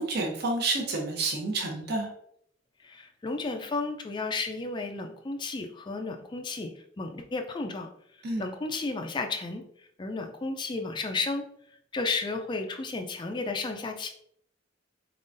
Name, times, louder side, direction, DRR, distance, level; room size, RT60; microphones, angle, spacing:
voice 1, 0.0-2.1 8.2-8.4, right 3 dB, 55° right, 1 dB, 0.8 m, -29 dB
voice 2, 2.8-6.7 7.0-7.9 8.4-9.6 10.0-11.4 11.9-14.1, left 3 dB, 25° left, 5 dB, 0.3 m, -33 dB
4.4 x 3.7 x 2.6 m, 0.69 s
head